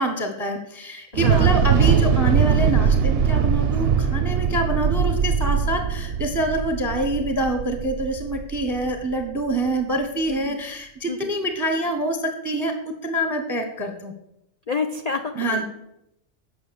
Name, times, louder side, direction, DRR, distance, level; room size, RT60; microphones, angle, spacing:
voice 1, 0.0-12.7 13.0-14.1 15.3-15.6, right 1 dB, 15° right, 4 dB, 0.8 m, -26 dB
voice 2, 1.1-1.6 10.3-10.6 11.1-11.3 14.7-15.6, left 4 dB, 60° left, 6 dB, 0.4 m, -29 dB
Thunder / Explosion, 1.1-9.3, right 7 dB, 60° right, 0.7 m, -21 dB
8.6 x 5.9 x 6.8 m, 0.84 s
omnidirectional pair, 1.4 m